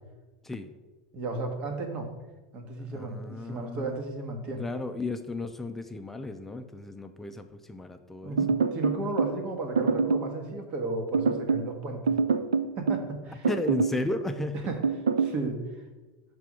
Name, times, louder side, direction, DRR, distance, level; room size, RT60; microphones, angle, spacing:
voice 1, 1.1-2.1 2.5-4.6 8.2-12.0 12.8-13.5 14.7-14.8 15.2-15.8, right 2 dB, 50° right, 4 dB, 1.3 m, -34 dB
voice 2, 2.9-4.0 4.6-8.4 13.5-14.6, left 2 dB, 10° left, 6 dB, 0.5 m, -34 dB
sound 1, 8.4-9.4 9.8-10.3 11.1-11.7 12.1-13.1 13.4-14.0 14.8-15.4, right 5 dB, 90° right, 0.4 m, -25 dB
6.0 x 3.4 x 5.9 m, 1.2 s
hypercardioid pair, 90°, 3 cm